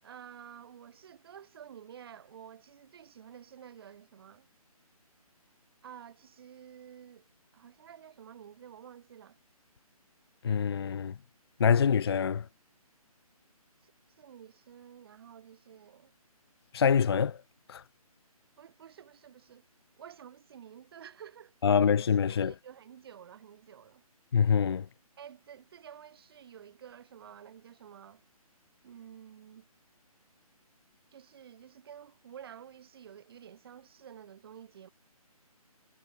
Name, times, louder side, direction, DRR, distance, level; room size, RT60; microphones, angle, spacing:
voice 1, 0.0-4.5 5.8-7.3 7.5-9.4 13.8-13.9 14.2-16.1 18.6-19.6 20.0-21.9 22.3-24.0 25.2-28.2 28.8-29.7 31.1-34.9, right 9 dB, 40° right, 5.4 m, -51 dB
voice 2, 10.4-11.1 11.6-12.4 16.7-17.4 17.7-17.8 21.6-22.5 24.3-24.9, left 7 dB, 40° left, 0.4 m, -25 dB
figure-of-eight pair, 155°, 19 cm